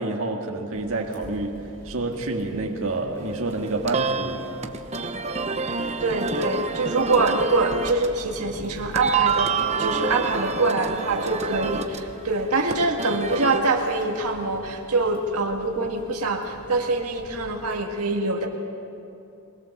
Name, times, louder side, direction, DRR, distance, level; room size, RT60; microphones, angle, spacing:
voice 1, 0.0-4.5, right 2 dB, 65° right, 0 dB, 1.9 m, -28 dB
sound 1, 0.7-17.8, equal, 45° left, 5.9 m, -46 dB
sound 2, 3.2-13.6, right 5 dB, 30° right, 0.9 m, -28 dB
voice 2, 6.0-9.5 9.8-18.5, right 3 dB, 85° right, 1 dB, 1.8 m, -24 dB
22.5 x 20.5 x 7.2 m, 2.7 s
head